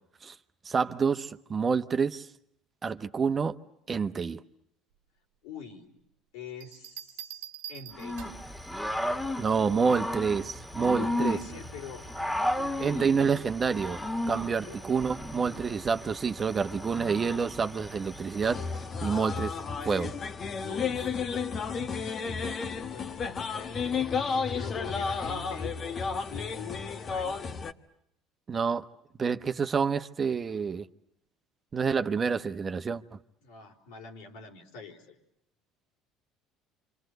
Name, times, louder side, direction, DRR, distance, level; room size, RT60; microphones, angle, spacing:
voice 1, 0.6-2.3 2.8-3.6 3.9-4.4 9.4-11.4 12.8-14.0 14.3-18.6 19.0-19.5 19.8-20.1 28.5-28.9 29.2-30.9 31.7-33.0, right 5 dB, 35° right, 1.2 m, -28 dB
voice 2, 5.4-5.9 6.3-8.2 10.9-12.1 12.5-13.4 14.6-14.8 20.6-27.5 33.4-35.2, left 6 dB, 80° left, 4.5 m, -44 dB
sound 1, 6.6-8.6 10.2-10.5, right 12 dB, 80° right, 1.5 m, -44 dB
Growling / Cricket, 8.0-18.9, left 1 dB, 10° left, 2.3 m, -34 dB
sound 2, 18.4-27.7, left 5 dB, 45° left, 1.4 m, -32 dB
27.5 x 26.0 x 8.1 m
supercardioid pair, 80°, 0 cm